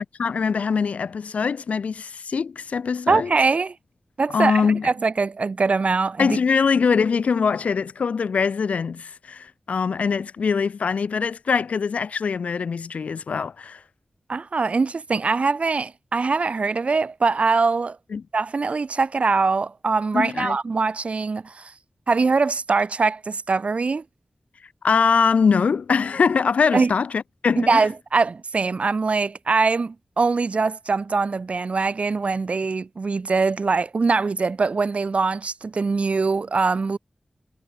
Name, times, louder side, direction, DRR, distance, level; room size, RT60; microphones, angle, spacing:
voice 1, 0.0-3.3 4.3-4.9 6.2-13.8 18.1-18.2 20.1-20.6 24.8-27.8, left 5 dB, 90° left, 4.5 m, -22 dB
voice 2, 3.1-3.8 4.2-6.4 14.3-18.0 18.3-21.7 22.1-24.0 26.7-26.9 27.6-37.0, right 4 dB, 70° right, 3.6 m, -22 dB
cardioid pair, 45°, 2 cm